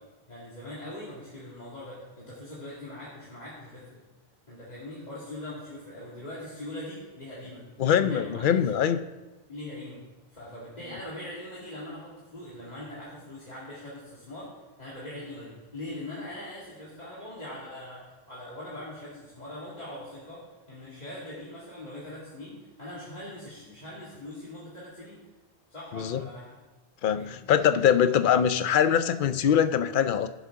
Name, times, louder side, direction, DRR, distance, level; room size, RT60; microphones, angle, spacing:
voice 1, 0.3-4.0 4.5-7.6 7.9-8.9 9.5-10.0 10.3-14.5 14.8-25.2 25.7-26.6 27.0-27.3 27.8-27.9, left 1 dB, 40° left, -7 dB, 2.4 m, -41 dB
voice 2, 7.8-9.0 25.9-26.2 27.0-30.3, left 9 dB, 55° left, 10 dB, 0.7 m, -23 dB
17.0 x 7.3 x 3.7 m, 1.2 s
omnidirectional pair, 1.1 m